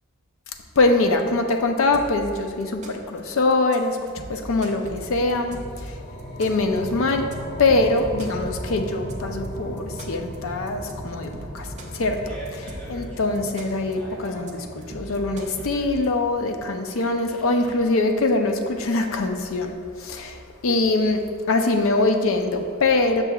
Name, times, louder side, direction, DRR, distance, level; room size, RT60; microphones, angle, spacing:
voice 1, 0.8-6.0 6.4-7.3 7.6-11.7 11.9-21.2 21.5-23.2, left 2 dB, 80° left, 5 dB, 0.5 m, -23 dB
sound 1, 1.9-2.3 2.6-3.2 3.5-3.8 4.1-5.9 6.2-6.8 7.1-7.3 7.6-9.5 9.8-10.4 10.7-10.9 11.2-13.0 13.3-13.9 14.2-14.5 14.8-16.1, right 2 dB, 35° right, 0.5 m, -39 dB
sound 2, 4.2-16.7, equal, 50° left, 0.9 m, -38 dB
Fart, 12.0-19.7, right 1 dB, 5° left, 1.0 m, -45 dB
7.5 x 6.6 x 2.3 m, 2.2 s
head